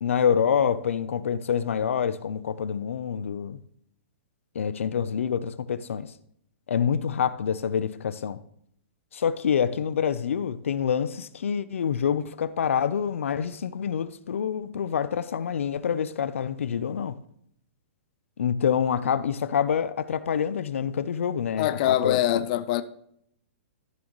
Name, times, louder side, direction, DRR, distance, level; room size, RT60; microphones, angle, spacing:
voice 1, 0.0-3.6 4.5-6.1 6.7-8.4 9.1-17.2 18.4-22.4, left 7 dB, 85° left, 0.6 m, -26 dB
voice 2, 21.6-22.8, left 13 dB, 40° left, 0.5 m, -23 dB
14.0 x 6.4 x 3.1 m
hypercardioid pair, 155°, 7 cm